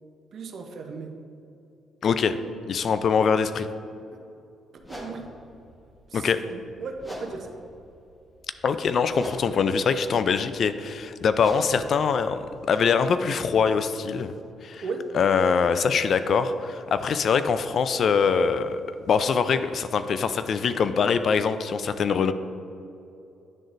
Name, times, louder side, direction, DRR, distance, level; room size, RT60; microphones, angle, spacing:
voice 1, 0.3-1.1 4.1-4.2 4.9-5.3 6.1-7.5 14.8-15.0, right 4 dB, 60° right, 4 dB, 0.7 m, -36 dB
voice 2, 2.0-2.4 2.7-3.7 6.1-6.4 8.6-14.3 14.6-14.8 15.1-22.3, left 6 dB, 55° left, 11 dB, 0.3 m, -23 dB
sound 1, 4.8-13.5, equal, 10° left, 1.3 m, -45 dB
10.5 x 3.8 x 2.5 m, 2.7 s
cardioid pair, 90°, 0 cm